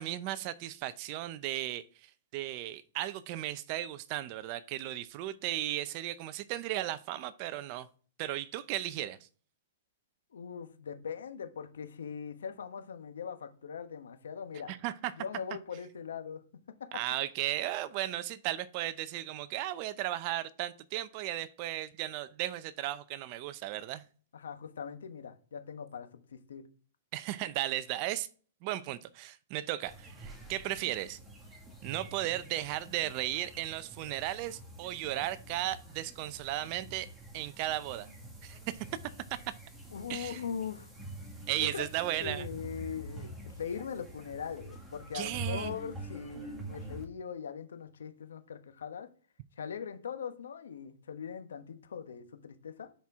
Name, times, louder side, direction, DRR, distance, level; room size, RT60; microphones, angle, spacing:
voice 1, 0.0-7.9 8.2-9.2 14.7-15.1 16.9-24.0 27.1-28.3 28.6-31.2 31.8-37.1 37.3-38.1 38.4-38.9 39.3-39.4 40.1-40.4 41.5-42.5 45.1-45.7, right 14 dB, 40° right, 0.6 m, -35 dB
voice 2, 10.3-14.8 15.1-16.4 16.8-17.2 24.3-26.6 39.9-40.9 41.6-41.8 42.2-49.1 49.6-52.9, left 7 dB, 85° left, 1.1 m, -41 dB
sound 1, 29.8-47.0, right 2 dB, 10° right, 1.7 m, -46 dB
10.0 x 4.4 x 3.6 m
hypercardioid pair, 140°, 0 cm